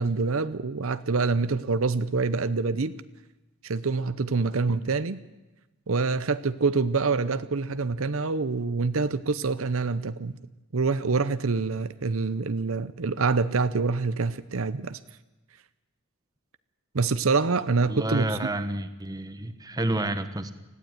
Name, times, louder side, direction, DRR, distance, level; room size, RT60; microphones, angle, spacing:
voice 1, 0.0-2.9 3.6-5.2 5.9-10.3 10.7-15.0 16.9-18.2, right 4 dB, 70° right, 13 dB, 0.8 m, -26 dB
voice 2, 17.8-20.5, right 1 dB, 20° right, 10 dB, 1.2 m, -29 dB
19.5 x 15.0 x 9.5 m, 1.1 s
head